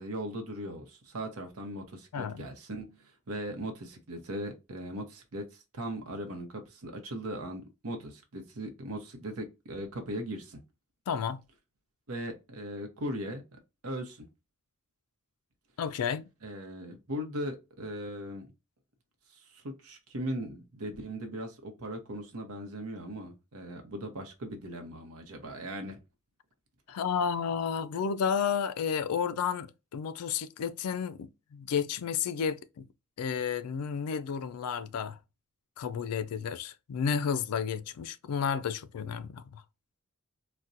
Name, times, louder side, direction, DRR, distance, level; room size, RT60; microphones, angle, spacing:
voice 1, 0.0-10.6 12.1-13.4 13.8-14.3 16.4-18.5 19.3-26.0, right 1 dB, 75° right, 0.8 m, -39 dB
voice 2, 2.1-2.5 11.1-11.4 15.8-16.3 26.9-32.9 33.2-35.2 35.8-39.6, left 7 dB, 80° left, 0.4 m, -32 dB
4.1 x 2.2 x 2.5 m
head